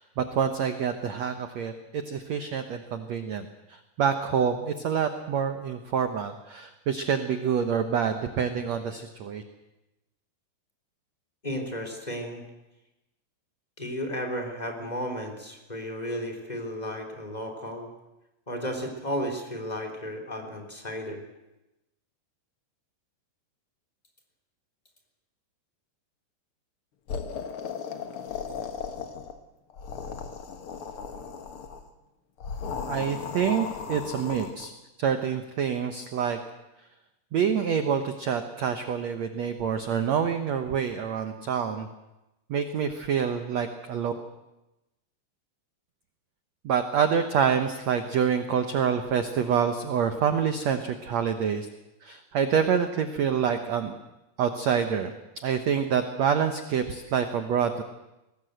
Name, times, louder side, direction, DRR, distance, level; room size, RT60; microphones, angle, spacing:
voice 1, 0.0-9.4 32.9-34.7 35.0-36.4 37.3-41.9 42.5-44.1 46.6-51.7 52.0-53.9 54.4-55.2 55.4-57.8, right 7 dB, 90° right, 8 dB, 1.5 m, -27 dB
voice 2, 11.4-12.4 13.8-17.9 18.5-21.2, equal, 10° left, 2 dB, 2.8 m, -33 dB
sound 1, 27.1-29.4 29.7-31.8 32.4-34.7, left 6 dB, 70° left, 1.3 m, -36 dB
22.5 x 19.5 x 8.0 m, 0.97 s
omnidirectional pair, 4.8 m